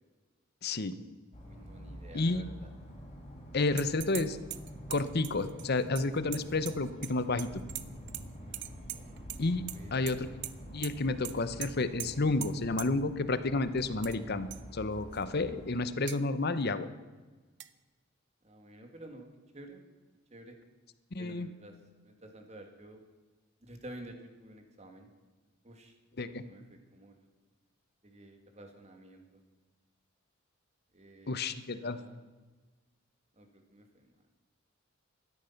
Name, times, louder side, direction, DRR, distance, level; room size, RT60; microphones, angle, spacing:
voice 1, 0.6-1.0 2.1-2.4 3.5-4.4 4.9-7.6 9.4-9.6 9.9-10.3 10.7-16.9 21.1-21.5 26.2-26.4 31.3-32.0, left 3 dB, 50° left, 13 dB, 0.8 m, -31 dB
sound 1, 1.3-15.9, equal, 30° left, 3.9 m, -47 dB
voice 2, 1.4-2.7 8.4-9.2 9.7-10.2 18.4-19.3 19.5-19.8 20.3-20.6 21.2-21.7 22.0-23.0 23.6-25.1 25.6-26.0 26.3-27.3 28.0-29.4 30.9-32.2 33.4-34.1, right 1 dB, 35° right, 4 dB, 2.2 m, -51 dB
sound 2, 3.8-4.2 4.5-7.1 7.4-8.2 8.5-9.4 9.7-10.1 10.4-10.5 10.8-10.9 11.2-11.3 11.6-11.7 12.0-12.1 12.4-12.5 12.8-12.9 13.8-14.2 14.5-14.6 15.1-15.2 16.1-16.2 17.6-17.7, right 15 dB, 60° right, 0.7 m, -40 dB
15.0 x 13.0 x 5.8 m, 1.3 s
head